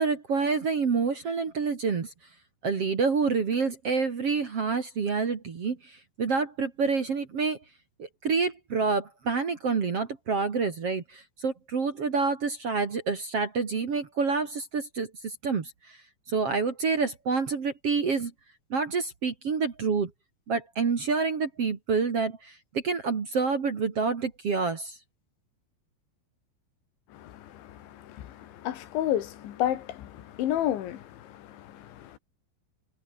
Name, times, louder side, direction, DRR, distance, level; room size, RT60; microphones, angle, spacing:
voice 1, 0.0-2.1 2.6-7.6 8.0-15.7 16.3-18.3 18.7-20.1 20.5-25.0, right 5 dB, 40° right, 2.5 m, -28 dB
voice 2, 27.1-32.2, left 12 dB, 80° left, 4.3 m, -32 dB
omnidirectional pair, 5.3 m